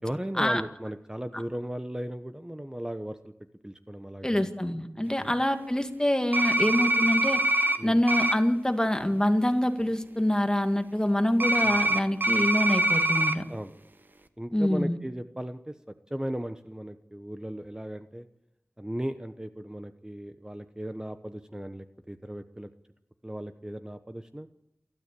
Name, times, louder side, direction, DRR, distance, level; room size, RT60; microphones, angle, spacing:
voice 1, 0.0-3.3 3.6-4.5 5.2-5.3 7.8-8.0 11.6-11.8 13.5-13.7 14.4-15.7 16.1-18.2 18.8-22.7 23.2-24.5, right 1 dB, 15° right, 9 dB, 1.0 m, -36 dB
voice 2, 4.2-7.4 7.8-13.4 14.5-15.0, left 1 dB, 15° left, 7 dB, 2.0 m, -25 dB
sound 1, 6.3-7.8 8.1-8.3 11.4-13.4, right 1 dB, 50° right, 1.4 m, -24 dB
28.5 x 12.5 x 8.5 m, 0.86 s
wide cardioid pair, 50°, 4 cm